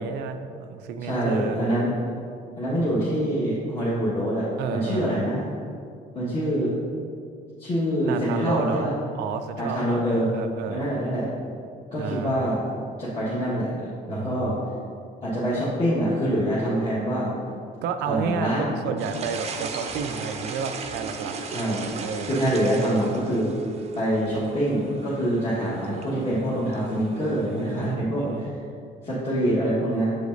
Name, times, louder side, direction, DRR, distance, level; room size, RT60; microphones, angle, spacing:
voice 1, 0.0-1.6 4.6-5.2 8.1-8.9 9.1-10.9 11.9-12.4 14.1-14.9 17.8-21.3 22.0-22.4 27.8-28.5, right 6 dB, 85° right, 9 dB, 0.4 m, -31 dB
voice 2, 1.0-1.9 2.6-5.5 6.1-6.7 7.6-8.9 9.6-10.3 10.7-11.3 11.9-12.6 13.0-13.7 14.1-14.6 15.2-17.3 18.1-18.7 21.4-21.9 22.2-23.5 23.9-28.4 29.0-30.1, equal, 35° left, -10 dB, 1.4 m, -25 dB
sound 1, 19.0-27.9, right 4 dB, 40° right, 0.6 m, -37 dB
7.3 x 5.0 x 2.6 m, 2.3 s
cardioid pair, 110°, 17 cm